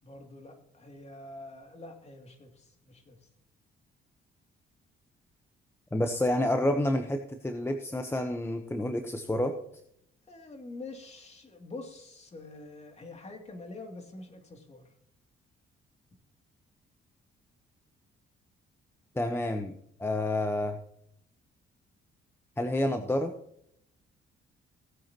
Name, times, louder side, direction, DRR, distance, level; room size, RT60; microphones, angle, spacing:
voice 1, 0.0-3.3 10.3-14.8, left 2 dB, 35° left, 3 dB, 2.7 m, -46 dB
voice 2, 5.9-9.5 19.1-20.8 22.6-23.3, left 1 dB, 10° left, 6 dB, 1.0 m, -29 dB
17.5 x 8.7 x 3.0 m, 0.72 s
cardioid pair, 90°, 20 cm